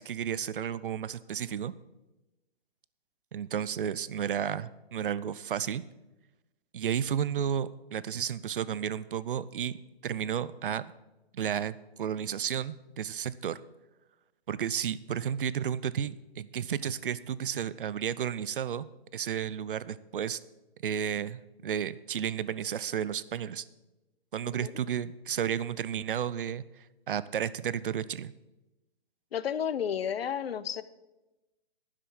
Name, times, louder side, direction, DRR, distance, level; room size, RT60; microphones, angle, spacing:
voice 1, 0.0-1.7 3.3-5.8 6.7-9.8 10.0-10.8 11.3-13.6 14.5-18.9 19.1-20.4 20.8-23.6 24.3-28.3, right 8 dB, 55° right, 17 dB, 0.6 m, -32 dB
voice 2, 29.3-30.8, left 8 dB, 70° left, 16 dB, 0.8 m, -32 dB
11.5 x 6.7 x 7.4 m, 1.0 s
hypercardioid pair, 170°, 31 cm